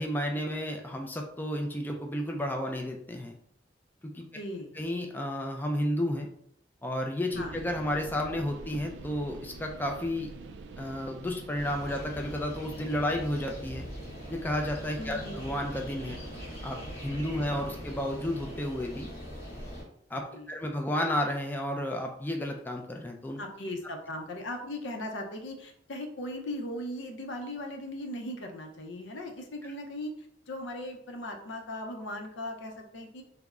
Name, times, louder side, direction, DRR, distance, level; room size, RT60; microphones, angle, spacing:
voice 1, 0.0-3.3 4.1-4.2 4.8-6.3 6.8-10.3 10.8-13.8 14.3-16.2 16.6-19.1 20.1-20.2 20.5-23.4, left 1 dB, 10° left, 2 dB, 0.3 m, -32 dB
voice 2, 4.3-4.7 7.4-7.5 15.0-15.4 20.3-20.5 23.4-30.1 30.5-33.2, left 1 dB, 85° left, 3 dB, 0.6 m, -38 dB
sound 1, 7.3-17.6, right 3 dB, 75° right, 0.3 m, -47 dB
sound 2, 11.6-19.8, equal, 55° left, 1.3 m, -42 dB
3.4 x 2.0 x 3.5 m, 0.68 s
head